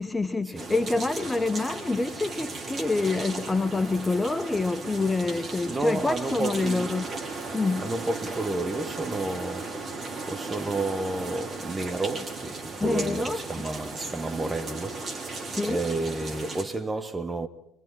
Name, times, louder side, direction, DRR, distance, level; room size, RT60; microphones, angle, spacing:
voice 1, 0.0-7.0 7.5-7.9 12.8-13.4 15.5-15.8, left 3 dB, 15° left, 0.8 m, -27 dB
sound 1, 0.5-16.6, right 3 dB, 40° right, 4.3 m, -36 dB
voice 2, 5.7-6.9 7.8-9.8 10.3-15.1 15.6-17.5, right 2 dB, 15° right, 1.7 m, -31 dB
26.5 x 24.0 x 4.3 m
figure-of-eight pair, 60°, 0 cm